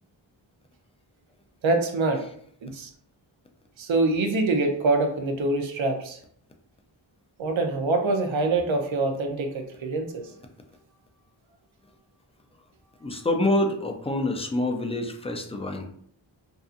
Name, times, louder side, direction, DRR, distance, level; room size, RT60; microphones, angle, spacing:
voice 1, 1.6-2.2 2.6-2.9 3.8-6.2 7.4-10.3, right 3 dB, 75° right, 4 dB, 0.6 m, -25 dB
voice 2, 13.0-15.9, left 1 dB, 15° left, 4 dB, 0.3 m, -26 dB
2.6 x 2.4 x 2.4 m, 0.64 s
wide cardioid pair, 60°, 46 cm